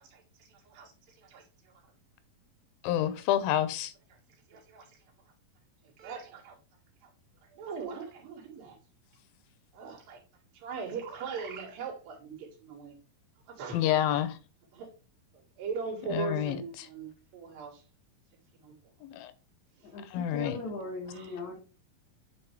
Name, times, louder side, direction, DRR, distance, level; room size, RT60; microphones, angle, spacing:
voice 1, 0.0-1.7 4.1-4.2 4.5-5.0 5.8-6.6 7.0-7.1 7.4-8.8 9.7-10.2 10.5-13.0 13.5-13.8 14.7-14.9 15.3-17.8 18.5-18.7 19.8-19.9 21.1-21.3, right 5 dB, 80° right, 3.7 m, -40 dB
voice 2, 2.8-3.9 13.7-14.4 16.1-16.6 19.0-19.3 20.1-20.6, left 11 dB, 90° left, 2.5 m, -28 dB
voice 3, 19.8-21.6, left 3 dB, 60° left, 2.3 m, -39 dB
8.7 x 3.8 x 3.4 m
omnidirectional pair, 4.1 m